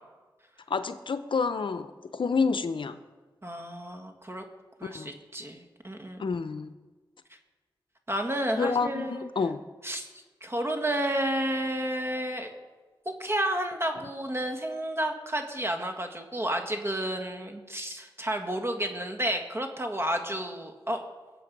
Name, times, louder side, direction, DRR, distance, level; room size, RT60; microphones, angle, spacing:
voice 1, 0.7-1.9 2.1-3.0 4.8-5.1 6.2-6.7 8.6-9.6, left 5 dB, 70° left, 11 dB, 0.7 m, -28 dB
voice 2, 3.4-4.4 4.8-6.2 8.1-9.3 9.8-10.1 10.4-12.5 13.0-21.0, right 1 dB, 30° right, 5 dB, 1.8 m, -31 dB
21.5 x 7.7 x 5.4 m, 1.3 s
wide cardioid pair, 65°, 9 cm